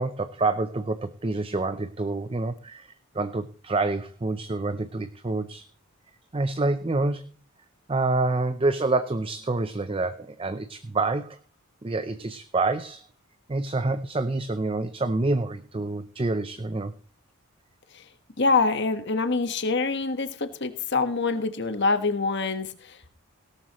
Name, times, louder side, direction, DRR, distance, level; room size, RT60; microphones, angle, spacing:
voice 1, 0.0-5.7 6.3-7.2 7.9-11.4 11.8-13.0 13.5-16.9, right 2 dB, 25° right, 11 dB, 0.5 m, -27 dB
voice 2, 18.4-23.1, left 3 dB, 50° left, 9 dB, 1.4 m, -25 dB
17.5 x 12.5 x 3.1 m, 0.39 s
head